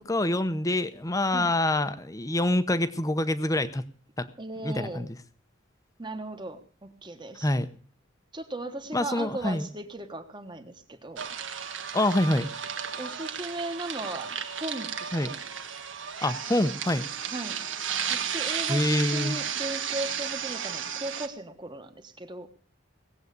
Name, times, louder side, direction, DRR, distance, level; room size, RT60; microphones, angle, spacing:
voice 1, 0.1-3.8 4.2-4.3 4.6-5.1 7.4-7.7 8.9-9.7 11.9-12.5 15.1-15.3 16.2-17.0 18.7-19.3, left 1 dB, 15° left, 12 dB, 0.8 m, -26 dB
voice 2, 4.4-5.1 6.0-7.5 8.3-11.3 13.0-15.4 17.3-17.6 18.1-22.5, right 2 dB, 20° right, 8 dB, 1.3 m, -37 dB
sound 1, 11.2-21.3, right 8 dB, 70° right, 1.4 m, -33 dB
18.5 x 8.0 x 6.7 m, 0.43 s
head